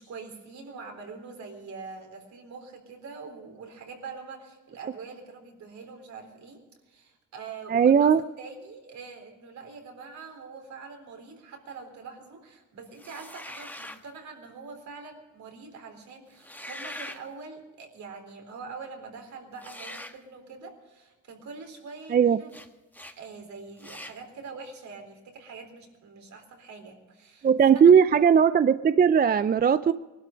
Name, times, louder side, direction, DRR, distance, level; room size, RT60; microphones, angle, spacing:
voice 1, 0.0-6.6 6.9-22.5 23.2-28.0, right 4 dB, 65° right, 4 dB, 3.9 m, -44 dB
voice 2, 7.7-8.2 22.1-22.4 27.4-29.9, right 7 dB, 30° right, 14 dB, 0.5 m, -18 dB
sound 1, 13.0-14.0 16.3-17.2 19.6-20.2 22.5-22.7 22.9-23.2 23.8-24.2, left 1 dB, 5° left, 1.4 m, -42 dB
19.5 x 12.0 x 5.2 m, 1.2 s
cardioid pair, 90°, 30 cm